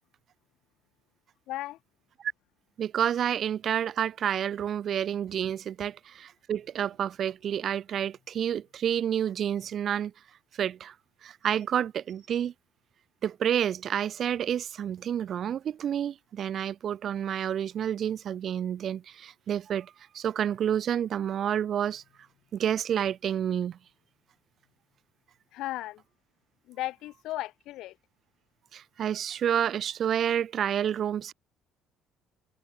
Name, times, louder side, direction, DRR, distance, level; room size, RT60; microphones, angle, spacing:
voice 1, 1.5-1.8 25.5-26.0 26.7-27.9, left 16 dB, 65° left, 2.7 m, -35 dB
voice 2, 2.8-10.1 10.6-10.9 11.2-12.5 13.2-22.0 22.5-23.8 28.7-31.3, right 9 dB, 40° right, 1.2 m, -29 dB
cardioid pair, 180°, 0 cm